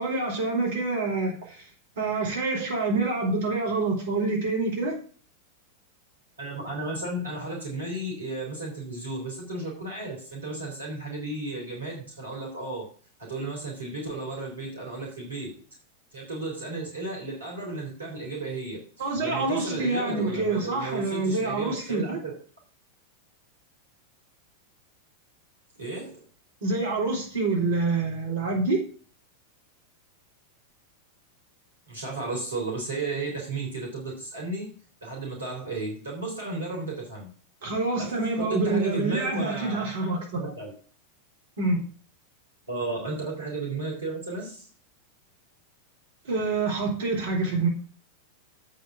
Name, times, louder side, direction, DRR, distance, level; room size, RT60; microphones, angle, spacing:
voice 1, 0.0-1.7 2.0-5.0 19.0-22.2 26.6-28.8 37.6-40.5 41.6-41.8 46.2-47.7, right 3 dB, 60° right, -1 dB, 3.8 m, -27 dB
voice 2, 6.4-12.9 13.2-15.5 16.1-22.3 25.8-26.2 31.9-34.7 35.0-37.3 38.0-39.9 40.3-40.7 42.7-44.7, right 2 dB, 75° right, -2 dB, 3.5 m, -34 dB
8.3 x 5.8 x 6.8 m, 0.42 s
figure-of-eight pair, 90°, 0 cm